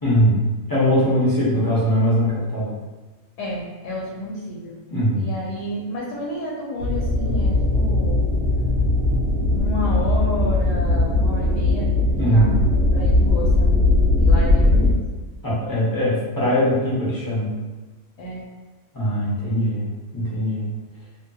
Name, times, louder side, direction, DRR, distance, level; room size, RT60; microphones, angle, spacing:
voice 1, 0.0-2.7 4.9-5.3 12.2-12.6 15.4-17.5 18.9-19.8 20.1-20.7, equal, 30° left, -9 dB, 0.4 m, -21 dB
voice 2, 3.4-4.8 5.2-8.2 9.5-12.6 12.9-13.8 14.2-15.0 18.2-18.4, left 1 dB, 80° left, -5 dB, 1.2 m, -30 dB
sound 1, 6.8-14.9, left 2 dB, 60° right, 0.8 m, -19 dB
2.9 x 2.3 x 2.7 m, 1.3 s
omnidirectional pair, 1.7 m